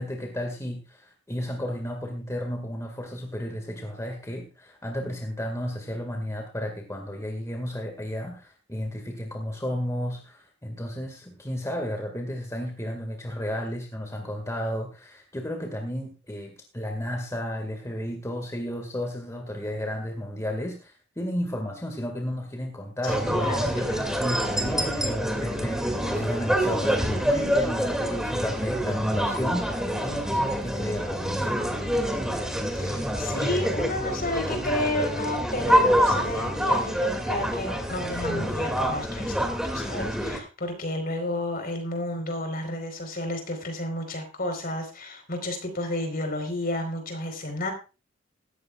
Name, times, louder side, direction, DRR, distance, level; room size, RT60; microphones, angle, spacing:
voice 1, 0.0-23.9 24.2-31.6, equal, 15° left, 2 dB, 2.0 m, -33 dB
voice 2, 23.0-24.2 32.8-47.7, left 1 dB, 50° left, 5 dB, 4.3 m, -32 dB
sound 1, 23.1-40.4, equal, 5° right, 2.4 m, -26 dB
18.0 x 14.5 x 2.4 m, 0.31 s
head